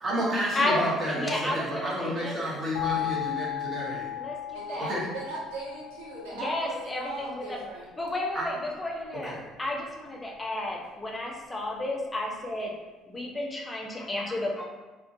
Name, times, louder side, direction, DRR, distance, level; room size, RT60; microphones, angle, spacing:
voice 1, 0.0-4.2 4.8-5.0 8.3-8.5 9.1-9.4, equal, 40° right, -5 dB, 0.9 m, -31 dB
voice 2, 0.5-2.3 4.2-4.9 6.3-7.6 8.0-9.3 9.6-12.7 13.1-14.7, left 1 dB, 25° left, 0 dB, 0.5 m, -32 dB
sound 1, 2.7-7.5, left 12 dB, 80° left, 0.3 m, -36 dB
voice 3, 4.5-7.9, right 2 dB, 80° right, -4 dB, 0.5 m, -38 dB
2.4 x 2.1 x 2.5 m, 1.2 s
hypercardioid pair, 55°, 0 cm